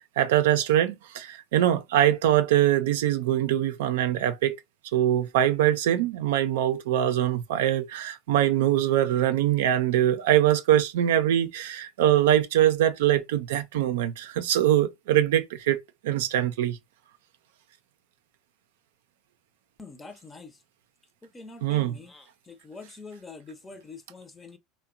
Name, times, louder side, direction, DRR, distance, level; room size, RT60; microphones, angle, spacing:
voice 1, 0.2-4.6 4.9-15.8 16.0-16.8 21.6-22.0, right 12 dB, 85° right, 0.4 m, -23 dB
voice 2, 19.8-20.5 21.3-21.9 22.7-24.6, left 3 dB, 20° left, 0.5 m, -44 dB
2.7 x 2.1 x 2.4 m
supercardioid pair, 110°, 0 cm